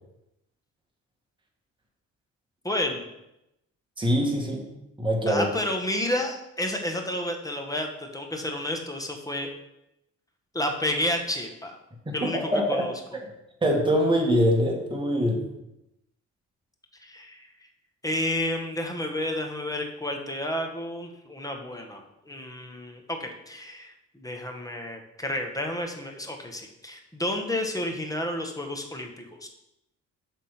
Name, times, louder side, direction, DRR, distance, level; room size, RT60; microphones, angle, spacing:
voice 1, 2.6-3.0 5.3-9.5 10.5-11.8 12.1-12.9 17.0-17.5 18.0-29.5, left 1 dB, 10° left, 3 dB, 1.1 m, -31 dB
voice 2, 4.0-4.6 5.0-5.5 12.2-12.8 13.6-15.4, equal, 15° right, -1 dB, 1.9 m, -23 dB
7.2 x 3.7 x 5.7 m, 0.88 s
cardioid pair, 90°, 30 cm